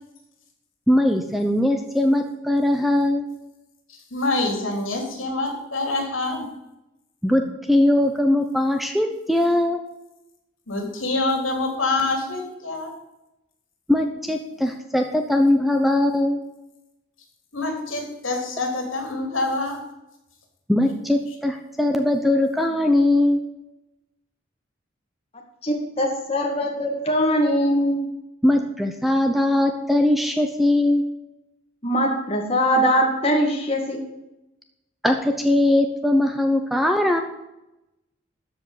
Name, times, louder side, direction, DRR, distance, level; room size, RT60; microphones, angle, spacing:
voice 1, 0.9-3.3 7.2-9.8 13.9-16.4 20.7-23.4 28.4-31.0 35.0-37.2, left 1 dB, ahead, 5 dB, 0.8 m, -20 dB
voice 2, 4.1-6.5 10.7-12.9 17.5-19.8, left 2 dB, 80° left, 2 dB, 3.7 m, -26 dB
voice 3, 25.6-28.0 31.8-34.0, equal, 30° left, 0 dB, 2.0 m, -21 dB
13.5 x 5.2 x 8.4 m, 0.92 s
head